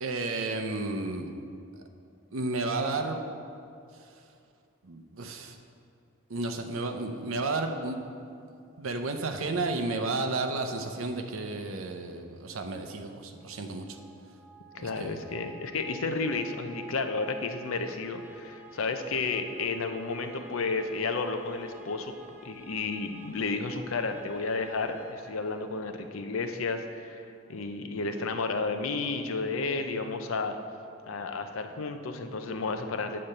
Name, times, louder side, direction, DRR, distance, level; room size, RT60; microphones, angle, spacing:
voice 1, 0.0-1.3 2.3-3.2 4.8-5.6 6.3-8.0 8.8-14.0 14.8-15.5, right 3 dB, 80° right, 5 dB, 0.7 m, -32 dB
sound 1, 13.4-26.2, right 3 dB, 10° right, 0.5 m, -52 dB
voice 2, 14.7-22.1 22.4-27.2 27.5-30.6 31.1-33.3, left 3 dB, 80° left, 7 dB, 0.6 m, -32 dB
8.7 x 4.3 x 6.5 m, 2.5 s
head